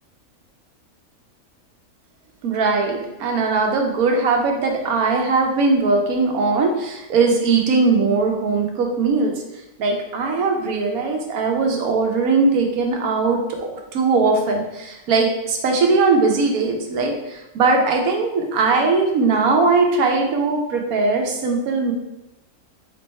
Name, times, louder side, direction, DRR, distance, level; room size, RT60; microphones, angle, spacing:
voice 1, 2.4-9.4 9.8-21.9, right 4 dB, 85° right, 2 dB, 1.2 m, -20 dB
3.8 x 3.3 x 4.2 m, 0.94 s
omnidirectional pair, 1.5 m